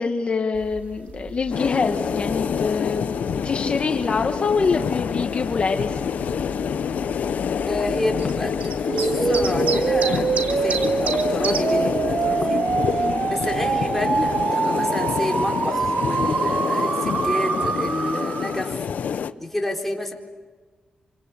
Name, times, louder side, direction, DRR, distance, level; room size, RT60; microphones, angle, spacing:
voice 1, 0.0-6.0 13.0-13.3, left 4 dB, 50° left, 4 dB, 1.5 m, -25 dB
sound 1, 0.5-14.4, right 5 dB, 80° right, 2.5 m, -36 dB
sound 2, 1.5-19.3, left 7 dB, 75° left, 0.9 m, -27 dB
voice 2, 7.7-12.7 13.3-18.9 19.4-20.1, left 1 dB, 10° left, 1 dB, 4.3 m, -29 dB
sound 3, 8.9-18.7, right 5 dB, 50° right, 1.1 m, -24 dB
27.5 x 26.0 x 8.3 m, 1.4 s
cardioid pair, 85°, 3 cm